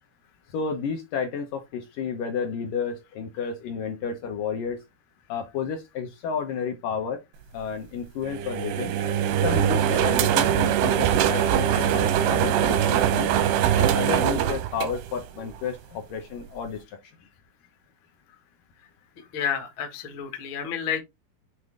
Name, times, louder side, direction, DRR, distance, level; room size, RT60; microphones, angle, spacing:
voice 1, 0.5-4.8 5.3-7.2 7.5-9.0 9.4-13.3 13.7-16.8, left 6 dB, 70° left, 2.2 m, -31 dB
sound 1, 8.2-15.5, right 10 dB, 85° right, 2.9 m, -22 dB
voice 2, 19.3-21.0, left 8 dB, 55° left, 1.3 m, -30 dB
8.0 x 3.2 x 3.6 m
omnidirectional pair, 4.6 m